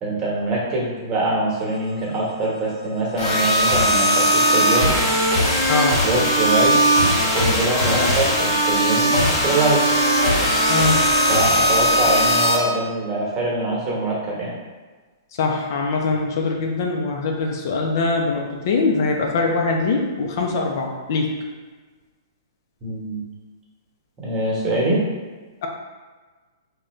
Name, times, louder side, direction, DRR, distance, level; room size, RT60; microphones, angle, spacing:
voice 1, 0.0-4.9 6.0-9.8 11.3-14.5 22.8-23.2 24.2-25.0, right 2 dB, 25° right, -4 dB, 1.1 m, -24 dB
sound 1, 3.2-12.5, equal, 35° left, 1.4 m, -18 dB
voice 2, 5.7-6.0 10.7-11.1 15.4-21.4 25.6-25.7, left 3 dB, 60° left, 1 dB, 0.5 m, -22 dB
3.7 x 2.2 x 3.1 m, 1.4 s
hypercardioid pair, 125°, 2 cm